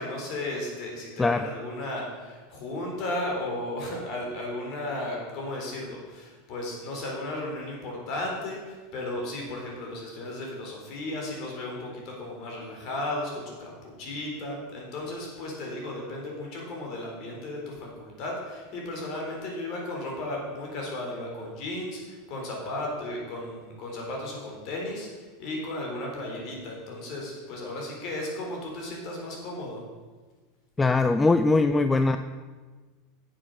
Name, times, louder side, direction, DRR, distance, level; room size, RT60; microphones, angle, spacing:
voice 1, 0.0-29.8, left 1 dB, 45° left, -1 dB, 3.9 m, -35 dB
voice 2, 30.8-32.2, left 3 dB, 10° left, 9 dB, 0.3 m, -21 dB
9.6 x 7.9 x 6.6 m, 1.3 s
supercardioid pair, 150°, 0 cm